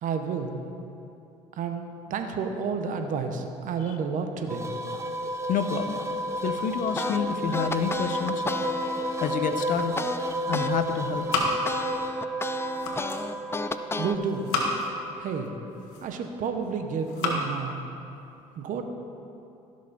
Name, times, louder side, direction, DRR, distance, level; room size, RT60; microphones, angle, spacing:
voice 1, 0.0-0.6 1.6-4.7 13.9-14.5 15.2-15.5 16.0-17.8 18.6-18.8, right 5 dB, 60° right, 6 dB, 1.1 m, -30 dB
sound 1, 4.5-15.9, right 1 dB, 20° right, 1.0 m, -32 dB
voice 2, 5.5-6.0 6.4-8.4 9.2-11.3, left 6 dB, 60° left, 9 dB, 0.8 m, -29 dB
sound 2, 7.0-10.7 11.1-14.2, left 3 dB, 15° left, 0.4 m, -33 dB
sound 3, 9.5-10.3 10.6-12.1 12.5-13.3 14.1-15.0 15.6-16.4 16.9-17.5, left 3 dB, 85° left, 1.4 m, -32 dB
15.5 x 6.4 x 4.2 m, 2.7 s
supercardioid pair, 75°, 15 cm